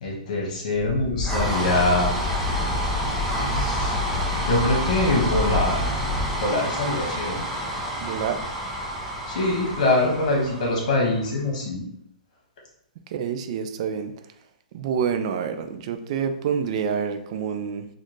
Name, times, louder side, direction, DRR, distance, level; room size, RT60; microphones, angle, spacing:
voice 1, 0.0-2.1 3.5-4.0 4.4-5.8 6.4-7.4 9.3-11.8, left 2 dB, 60° left, -1 dB, 1.5 m, -24 dB
sound 1, 0.7-11.2, left 1 dB, 5° right, 0.7 m, -27 dB
voice 2, 8.0-8.4 13.1-14.1 14.7-17.9, right 7 dB, 45° right, 7 dB, 0.4 m, -27 dB
4.2 x 2.4 x 3.1 m, 0.73 s
hypercardioid pair, 150°, 4 cm